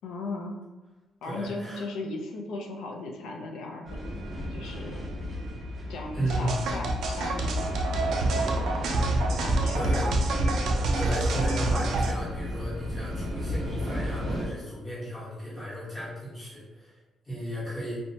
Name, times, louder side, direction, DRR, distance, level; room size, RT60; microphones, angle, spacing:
voice 1, 0.0-0.6 1.2-4.0 4.5-5.1 5.9-8.6 9.4-10.2, left 2 dB, 85° left, 1 dB, 0.4 m, -37 dB
voice 2, 1.2-1.8 6.1-6.6 9.7-10.1 11.0-16.9 17.2-18.0, right 1 dB, 10° left, -10 dB, 1.1 m, -34 dB
sound 1, 3.8-14.5, left 1 dB, 15° right, 0.8 m, -34 dB
sound 2, 6.3-12.1, right 2 dB, 65° right, 0.3 m, -27 dB
2.6 x 2.1 x 2.8 m, 1.2 s
cardioid pair, 160°, 0 cm